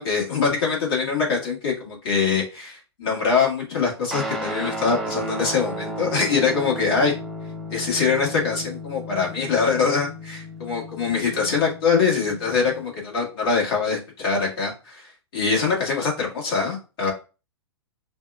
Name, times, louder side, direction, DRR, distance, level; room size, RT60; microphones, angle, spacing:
voice 1, 0.0-7.2 7.7-17.1, left 5 dB, 55° left, -2 dB, 1.8 m, -23 dB
Guitar, 4.1-12.9, equal, ahead, 0.5 m, -34 dB
5.3 x 2.3 x 2.4 m, 0.32 s
figure-of-eight pair, 105°, 14 cm